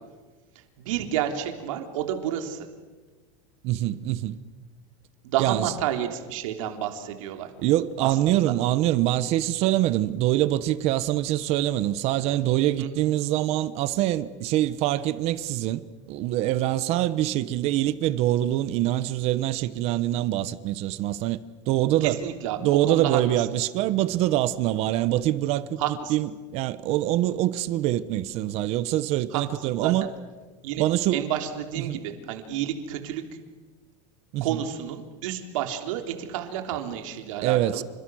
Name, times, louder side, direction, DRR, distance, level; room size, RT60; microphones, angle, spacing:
voice 1, 0.8-2.7 5.2-7.5 8.0-8.5 12.8-12.9 22.0-23.2 25.8-26.1 29.3-29.9 30.6-30.8 31.1-33.2 34.4-37.8, right 10 dB, 85° right, 3.5 m, -30 dB
voice 2, 3.6-4.4 5.4-5.7 7.6-15.8 16.1-22.2 22.6-25.8 26.1-30.1 30.8-31.2 31.8-32.0 34.3-34.6 37.4-37.8, right 14 dB, 40° right, 1.0 m, -24 dB
29.0 x 26.5 x 6.3 m
supercardioid pair, 175°, 16 cm